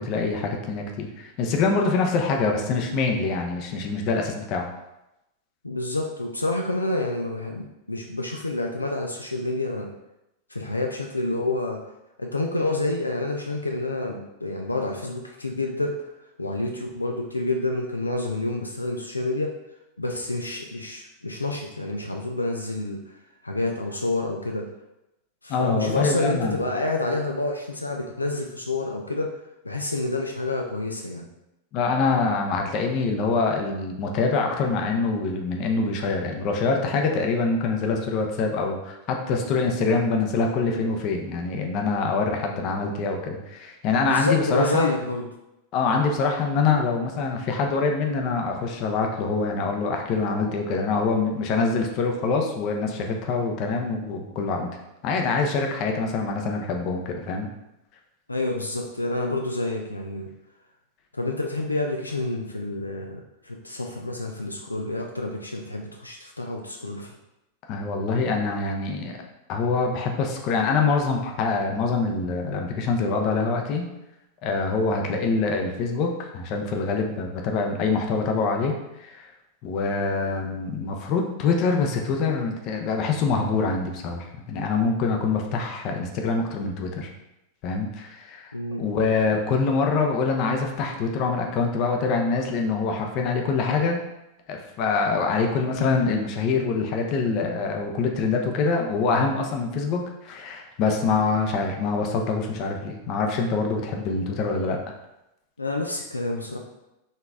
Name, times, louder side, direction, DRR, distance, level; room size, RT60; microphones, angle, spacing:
voice 1, 0.0-4.7 25.5-26.6 31.7-44.9 45.7-54.7 55.0-57.5 67.7-69.1 69.5-73.9 74.4-78.7 79.0-79.3 79.6-87.1 87.6-88.5 88.8-94.0 94.5-104.8, left 4 dB, 40° left, 2 dB, 0.7 m, -25 dB
voice 2, 5.6-9.9 10.5-11.8 12.2-16.0 16.4-19.5 20.0-23.0 23.4-24.7 25.4-29.4 29.6-31.3 44.1-45.3 58.3-60.3 61.1-67.2 88.5-88.9 105.6-106.6, left 2 dB, 85° left, 1 dB, 0.4 m, -28 dB
4.4 x 3.3 x 3.5 m, 0.90 s
figure-of-eight pair, 90°, 0 cm